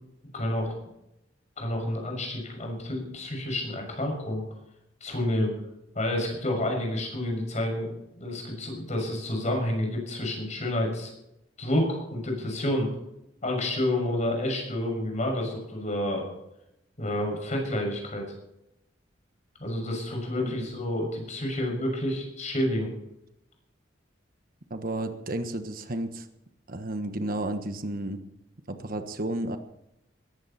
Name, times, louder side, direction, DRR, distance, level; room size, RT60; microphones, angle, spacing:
voice 1, 0.3-0.7 1.6-4.4 5.0-5.6 5.9-11.1 11.6-12.9 13.4-16.3 17.0-18.2 19.6-22.9, left 1 dB, 40° left, 2 dB, 6.5 m, -29 dB
voice 2, 20.4-20.7 24.7-26.3 26.7-28.2 28.7-29.6, right 1 dB, 50° right, 8 dB, 1.3 m, -32 dB
18.5 x 15.0 x 4.4 m, 0.84 s
head